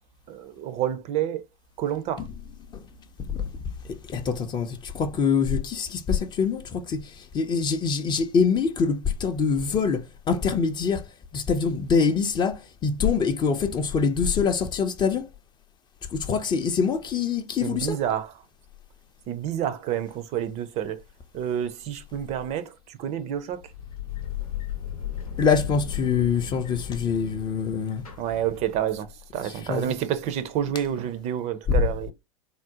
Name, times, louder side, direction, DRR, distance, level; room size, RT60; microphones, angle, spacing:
voice 1, 0.3-1.5 1.8-2.3 17.6-18.4 19.3-21.0 21.3-23.6 28.2-32.1, right 10 dB, 40° right, 0.4 m, -29 dB
voice 2, 3.9-15.3 16.1-18.0 25.4-28.0 29.7-29.9 31.8-31.9, left 5 dB, 25° left, 0.4 m, -25 dB
sound 1, 23.5-29.1, left 9 dB, 85° left, 0.8 m, -36 dB
3.6 x 2.1 x 2.7 m
figure-of-eight pair, 90°, 18 cm